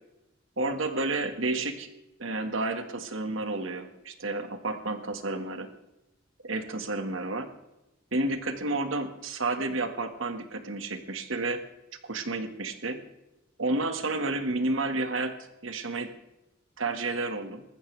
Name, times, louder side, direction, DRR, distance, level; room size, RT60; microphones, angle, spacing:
voice 1, 0.6-1.9 2.2-5.7 6.4-7.5 8.1-11.6 12.0-13.0 13.6-15.3 15.6-16.1 16.8-17.6, right 2 dB, 70° right, 7 dB, 1.8 m, -31 dB
20.0 x 14.5 x 3.4 m, 0.93 s
head